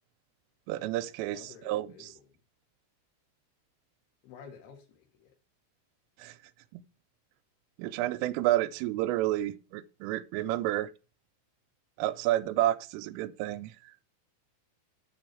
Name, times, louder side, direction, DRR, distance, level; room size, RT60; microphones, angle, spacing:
voice 1, 0.7-2.1 6.2-6.4 6.7-6.8 7.8-10.9 12.0-13.7, right 14 dB, 85° right, 3.2 m, -30 dB
voice 2, 1.3-2.3 4.2-5.3, left 6 dB, 60° left, 3.9 m, -51 dB
7.9 x 7.0 x 4.5 m
omnidirectional pair, 5.7 m